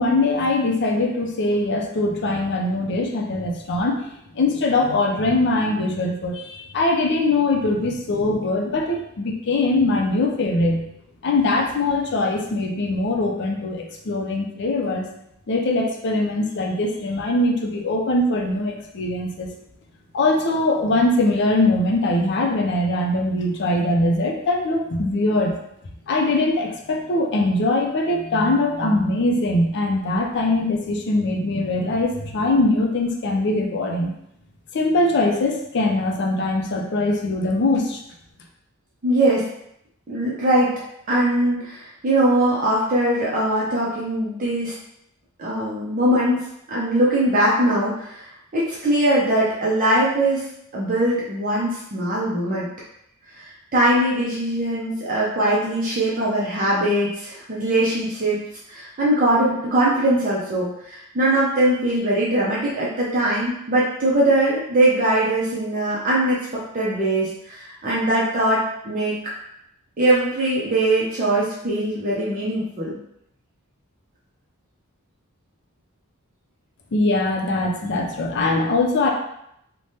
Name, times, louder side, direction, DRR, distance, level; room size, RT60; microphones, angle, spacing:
voice 1, 0.0-4.0 4.3-10.8 11.2-15.0 15.5-19.5 20.1-25.5 26.1-34.1 34.7-38.0 76.9-79.1, left 2 dB, 50° left, 2 dB, 0.5 m, -22 dB
voice 2, 39.0-39.4 40.1-40.7 41.1-44.7 45.4-50.4 50.7-52.7 53.7-58.4 58.7-66.4 66.7-69.1 70.0-73.0, right 1 dB, 40° right, -6 dB, 0.5 m, -21 dB
3.2 x 2.1 x 2.7 m, 0.77 s
head